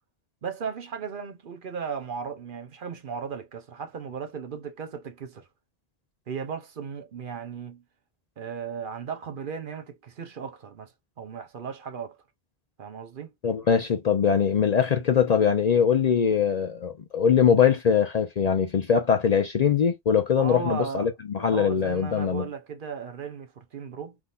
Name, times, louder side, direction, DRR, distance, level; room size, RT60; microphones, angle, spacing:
voice 1, 0.4-5.5 6.3-7.8 8.4-10.9 11.2-12.2 12.8-13.3 20.3-21.1 21.4-24.2, right 6 dB, 60° right, 0.8 m, -36 dB
voice 2, 13.4-22.5, left 7 dB, 50° left, 0.5 m, -22 dB
3.6 x 2.6 x 2.4 m
omnidirectional pair, 1.1 m